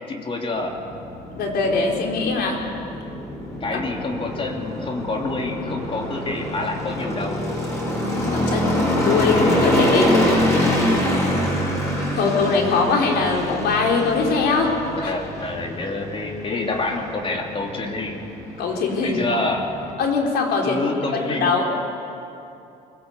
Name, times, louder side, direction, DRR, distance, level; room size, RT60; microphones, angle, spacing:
voice 1, 0.1-0.8 3.6-7.5 11.2-11.5 15.0-18.3 19.0-19.7 20.6-21.6, left 2 dB, 30° left, 2 dB, 2.9 m, -27 dB
sound 1, 0.6-19.9, left 1 dB, 15° left, 6.9 m, -25 dB
voice 2, 1.3-2.6 3.7-3.8 8.1-10.1 12.1-14.8 15.0-15.1 16.5-16.6 18.6-19.4 20.0-20.8 21.1-21.7, left 4 dB, 70° left, 0 dB, 4.1 m, -22 dB
24.0 x 16.0 x 8.3 m, 2.7 s
cardioid pair, 110°, 17 cm